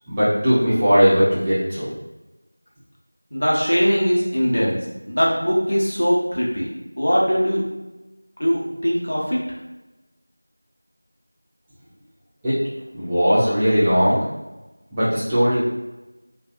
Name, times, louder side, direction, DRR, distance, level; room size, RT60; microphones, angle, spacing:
voice 1, 0.1-1.9 12.4-12.5 12.9-14.2 14.9-15.6, equal, 5° right, -14 dB, 0.3 m, -18 dB
voice 2, 3.3-4.7 5.1-6.7 7.0-7.6 8.4-9.4, equal, 60° left, -4 dB, 0.9 m, -20 dB
2.8 x 2.6 x 2.4 m, 1.1 s
figure-of-eight pair, 175°, 0 cm